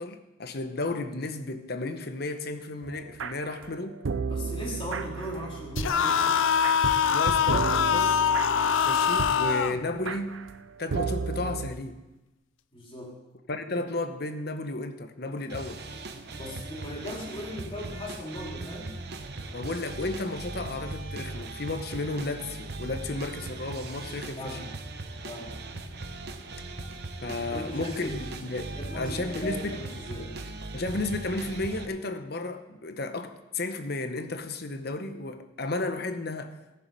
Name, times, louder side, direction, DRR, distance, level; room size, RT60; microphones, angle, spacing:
voice 1, 0.0-4.0 7.1-8.2 8.8-10.4 10.8-12.0 13.5-15.8 19.5-24.6 27.2-29.8 30.7-36.6, left 2 dB, 50° left, 0.9 m, -33 dB
sound 1, 2.8-11.7, right 4 dB, 75° right, 0.6 m, -34 dB
voice 2, 4.3-6.4 12.7-13.2 16.4-18.9 24.4-24.7 25.2-25.5 27.5-28.2 28.7-30.3, left 1 dB, 25° left, 2.9 m, -38 dB
sound 2, 5.8-9.8, left 7 dB, 75° left, 0.5 m, -23 dB
sound 3, 15.5-31.9, right 2 dB, 55° right, 0.9 m, -39 dB
17.0 x 7.1 x 5.3 m
head